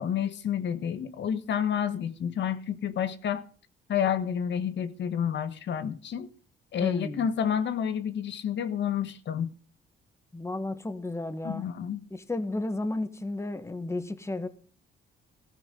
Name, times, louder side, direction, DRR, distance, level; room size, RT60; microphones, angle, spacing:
voice 1, 0.0-3.4 3.9-6.3 6.7-9.5 11.4-12.0, left 8 dB, 65° left, 1.3 m, -29 dB
voice 2, 6.8-7.3 10.3-11.6 12.1-14.5, left 2 dB, 15° left, 1.5 m, -33 dB
14.5 x 14.0 x 3.9 m
cardioid pair, 90°, 20 cm